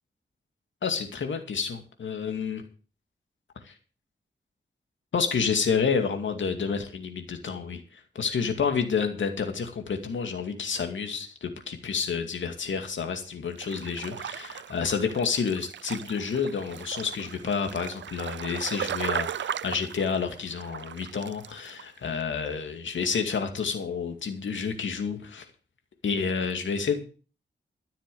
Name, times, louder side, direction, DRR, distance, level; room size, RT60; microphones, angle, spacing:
voice 1, 0.8-2.6 3.6-3.7 5.1-25.5 26.0-27.1, left 6 dB, 85° left, 6 dB, 2.4 m, -29 dB
sound 1, 13.4-21.8 22.1-22.2, right 9 dB, 75° right, 0.6 m, -37 dB
14.0 x 7.5 x 7.0 m, 0.38 s
wide cardioid pair, 80°, 19 cm